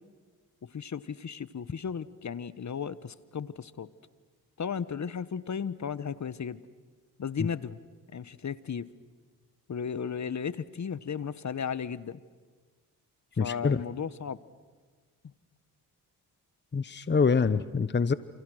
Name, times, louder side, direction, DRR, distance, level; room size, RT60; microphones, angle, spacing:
voice 1, 0.6-3.9 4.6-6.6 7.2-7.8 8.1-8.9 9.7-12.2 13.4-14.4, left 7 dB, 45° left, 16 dB, 1.2 m, -35 dB
voice 2, 13.4-13.8 16.7-18.1, left 5 dB, 25° left, 14 dB, 1.0 m, -25 dB
29.5 x 28.5 x 6.4 m, 1.4 s
supercardioid pair, 55°, 40 cm